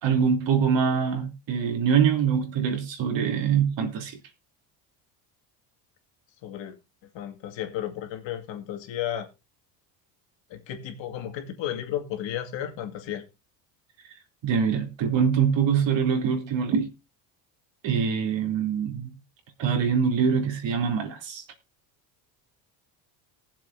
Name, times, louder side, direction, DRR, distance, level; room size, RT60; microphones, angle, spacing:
voice 1, 0.0-4.2 14.4-16.9 17.8-19.1 19.6-21.4, right 7 dB, 60° right, 3.3 m, -24 dB
voice 2, 6.4-6.7 7.1-9.3 10.5-13.2, left 11 dB, 60° left, 2.4 m, -33 dB
19.0 x 7.5 x 2.7 m
supercardioid pair, 75°, 50 cm